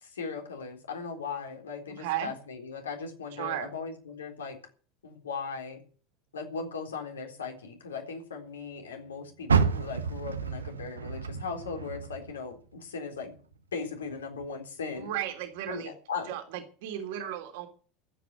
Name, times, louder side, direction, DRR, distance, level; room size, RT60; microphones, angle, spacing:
voice 1, 0.0-4.6 5.0-5.8 6.3-13.3 13.7-15.1 15.7-16.3, left 5 dB, 75° left, 4 dB, 3.8 m, -38 dB
voice 2, 2.0-2.3 3.3-3.7 15.0-15.9 16.3-17.7, right 11 dB, 60° right, 6 dB, 3.2 m, -35 dB
Car, 9.4-12.7 13.1-14.5 15.0-15.1 15.7-15.8, right 5 dB, 75° right, 1.1 m, -30 dB
14.0 x 8.6 x 9.1 m, 0.40 s
figure-of-eight pair, 75°, 0 cm